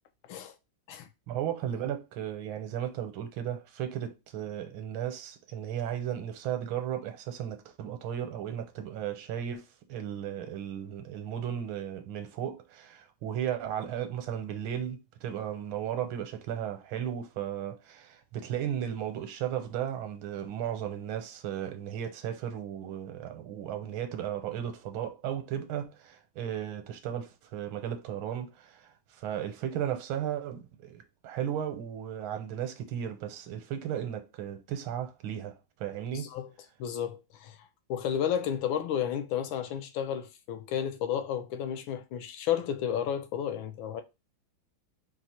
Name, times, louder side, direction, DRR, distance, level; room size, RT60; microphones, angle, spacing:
voice 1, 1.3-36.3, right 10 dB, 75° right, 1.4 m, -35 dB
voice 2, 36.1-36.5 36.8-37.6 37.9-44.0, left 9 dB, 80° left, 1.4 m, -32 dB
4.7 x 2.1 x 4.2 m
omnidirectional pair, 2.2 m